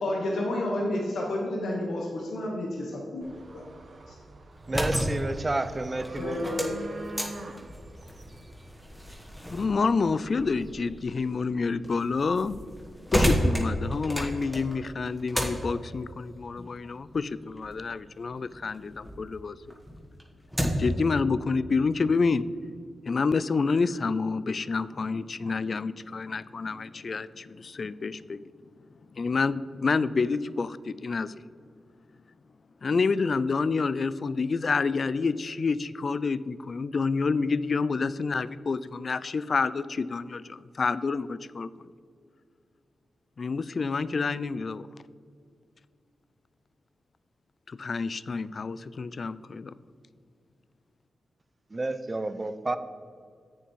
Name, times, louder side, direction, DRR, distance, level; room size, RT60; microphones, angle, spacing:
voice 1, 0.0-3.6 4.1-4.2 6.2-6.8, left 1 dB, 85° left, -1 dB, 1.0 m, -30 dB
sound 1, 3.2-10.6, right 2 dB, 50° right, 1.0 m, -46 dB
sound 2, 4.5-19.2 19.6-21.0, equal, 5° left, 1.7 m, -33 dB
voice 2, 4.7-6.4 51.7-52.8, right 2 dB, 30° right, 11 dB, 0.5 m, -30 dB
voice 3, 9.5-12.6 13.1-19.6 20.8-22.4 23.0-28.4 29.1-31.4 32.8-41.9 43.4-44.9 47.7-49.7, left 4 dB, 55° left, 17 dB, 0.3 m, -28 dB
8.1 x 6.9 x 4.6 m, 2.3 s
cardioid pair, 70°, 0 cm